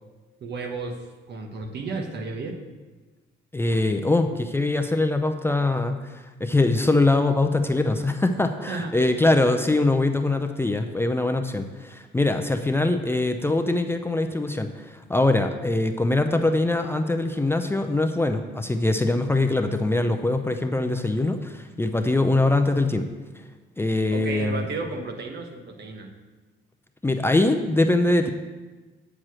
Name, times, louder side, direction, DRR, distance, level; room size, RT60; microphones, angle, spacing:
voice 1, 0.4-2.6 8.7-9.0 24.1-26.1, right 3 dB, 60° right, 4 dB, 1.3 m, -33 dB
voice 2, 3.5-23.0 23.8-24.6 27.0-28.3, left 2 dB, 10° left, 6 dB, 0.5 m, -23 dB
8.9 x 4.8 x 6.1 m, 1.2 s
cardioid pair, 90°, 20 cm